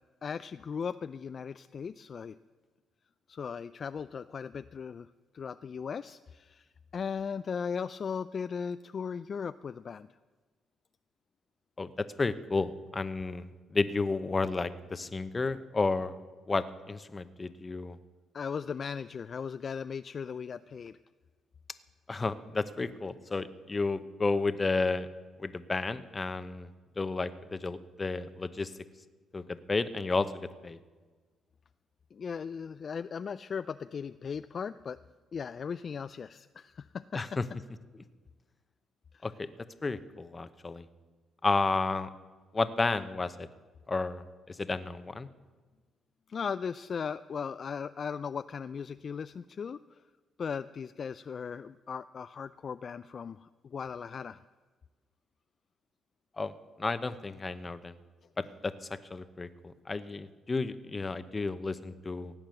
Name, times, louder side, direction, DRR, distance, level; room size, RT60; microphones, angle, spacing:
voice 1, 0.2-2.4 3.3-5.1 5.3-10.1 18.3-21.0 32.1-35.0 35.3-37.2 39.1-39.3 46.3-50.0 50.4-54.4, left 6 dB, 45° left, 13 dB, 0.3 m, -37 dB
voice 2, 11.8-16.1 16.5-18.0 22.1-25.1 25.4-26.7 27.0-28.7 29.3-30.8 37.1-37.4 39.2-39.5 39.8-40.8 41.4-42.1 42.5-43.5 43.9-45.3 56.4-56.5 56.8-57.9 58.4-62.3, left 3 dB, 25° left, 13 dB, 0.9 m, -32 dB
17.0 x 8.9 x 7.7 m, 1.3 s
cardioid pair, 90°, 0 cm